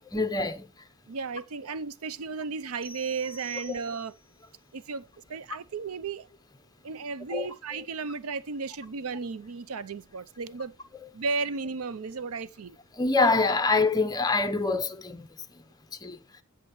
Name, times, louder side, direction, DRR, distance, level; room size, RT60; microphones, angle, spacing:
voice 1, 0.1-0.7 7.3-7.5 13.0-15.3 16.0-16.2, left 3 dB, 20° left, 0.8 m, -25 dB
voice 2, 1.1-4.1 4.7-5.0 5.3-6.3 6.8-10.7 11.1-12.8, right 4 dB, 85° right, 0.6 m, -34 dB
sound 1, 2.8-4.4, right 1 dB, 25° right, 2.9 m, -47 dB
20.0 x 6.8 x 3.1 m
head